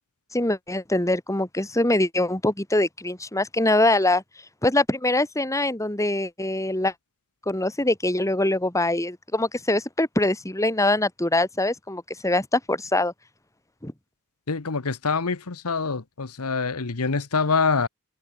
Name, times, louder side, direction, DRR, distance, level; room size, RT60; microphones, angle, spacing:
voice 1, 0.3-4.2 4.6-6.9 7.5-13.1 13.8-13.9, left 2 dB, 15° left, 3.2 m, -23 dB
voice 2, 14.5-17.9, left 4 dB, 85° left, 1.2 m, -25 dB
open air
head